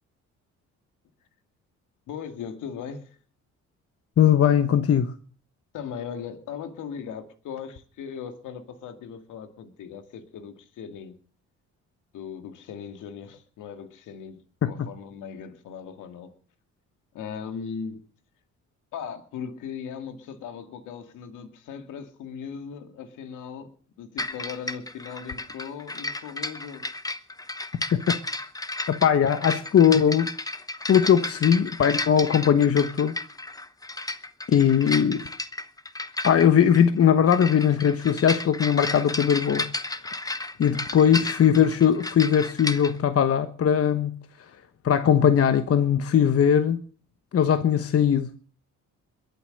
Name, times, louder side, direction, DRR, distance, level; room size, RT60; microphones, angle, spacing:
voice 1, 2.1-3.2 5.7-11.1 12.1-16.3 17.1-18.0 18.9-23.7 24.0-26.8, left 7 dB, 85° left, 2.1 m, -38 dB
voice 2, 4.2-5.1 14.6-14.9 29.0-30.3 30.9-33.2 34.5-35.2 36.2-39.7 40.6-44.1 44.8-46.8 47.3-48.4, left 8 dB, 50° left, 1.1 m, -20 dB
sound 1, 24.2-42.9, left 2 dB, 10° left, 0.9 m, -33 dB
22.0 x 8.1 x 6.5 m
cardioid pair, 90°, 30 cm